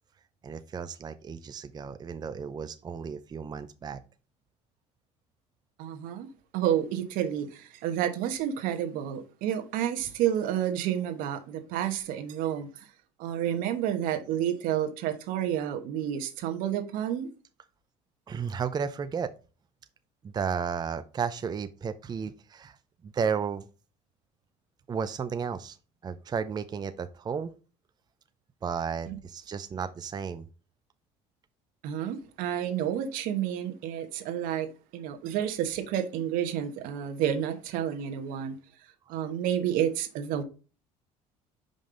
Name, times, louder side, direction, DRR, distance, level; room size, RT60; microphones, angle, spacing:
voice 1, 0.4-4.0 18.3-19.3 20.2-22.8 23.0-23.6 24.9-25.8 26.0-27.6 28.6-30.5, right 6 dB, 30° right, 0.5 m, -33 dB
voice 2, 5.8-6.3 6.5-12.9 13.2-17.3 29.1-29.2 31.8-34.7 34.9-38.6 39.1-40.4, right 10 dB, 70° right, 1.1 m, -30 dB
5.3 x 5.3 x 3.7 m
supercardioid pair, 85°, 15 cm